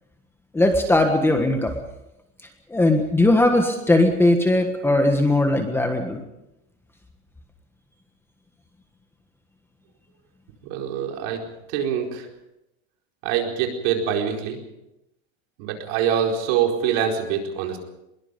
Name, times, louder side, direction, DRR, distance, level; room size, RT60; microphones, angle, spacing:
voice 1, 0.5-1.8 2.7-6.2, left 1 dB, 5° left, 4 dB, 1.5 m, -19 dB
voice 2, 10.7-11.4 11.7-12.3 13.2-14.6 15.6-17.8, right 8 dB, 55° right, 2 dB, 4.6 m, -24 dB
24.0 x 22.0 x 5.3 m, 0.87 s
supercardioid pair, 165°, 37 cm